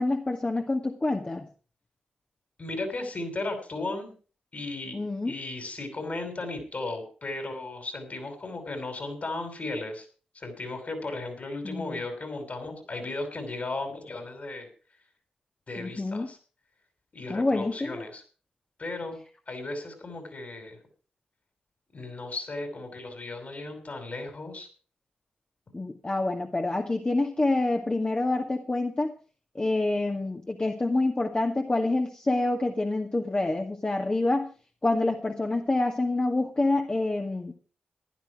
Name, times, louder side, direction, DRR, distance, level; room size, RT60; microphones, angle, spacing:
voice 1, 0.0-1.5 4.9-5.4 11.6-12.0 15.8-16.3 17.3-18.0 25.7-29.1 29.6-34.5 34.8-37.5, left 2 dB, 30° left, 3 dB, 1.9 m, -27 dB
voice 2, 2.6-4.1 4.5-5.0 5.2-10.1 10.3-14.7 15.7-16.4 17.1-18.2 18.8-19.2 19.5-20.8 21.9-24.7, left 2 dB, 50° left, 6 dB, 5.9 m, -35 dB
15.0 x 11.5 x 4.9 m, 0.38 s
supercardioid pair, 45°, 3 cm